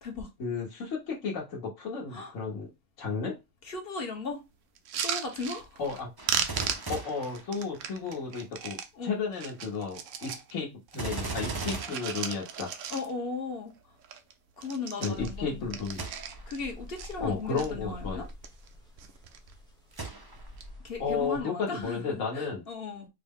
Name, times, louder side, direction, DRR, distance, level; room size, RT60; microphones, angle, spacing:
voice 1, 0.4-2.7 3.0-3.4 5.8-6.1 6.9-12.7 15.0-16.0 17.2-18.2 21.0-22.6, left 5 dB, 65° left, 1.4 m, -33 dB
voice 2, 3.6-4.4 5.0-5.8 8.9-9.2 12.9-14.0 14.6-15.7 16.5-18.3 20.8-23.1, left 4 dB, 50° left, 1.1 m, -37 dB
sound 1, 4.8-6.0 6.3-8.9 9.3-10.5 10.9-13.3 13.7-13.8 14.0-14.3 14.6-16.6 17.0-17.7 18.2-18.7 19.0-19.5 20.4-20.7, right 7 dB, 70° right, 0.9 m, -36 dB
Gunshot gunfire, 6.2-8.2 10.9-13.0 15.9-16.6 17.2-17.3 19.9-20.7 21.2-21.3, right 3 dB, 30° right, 0.4 m, -38 dB
sound 2, 15.1-21.4, left 1 dB, 5° left, 0.7 m, -46 dB
4.6 x 2.1 x 3.5 m
omnidirectional pair, 1.4 m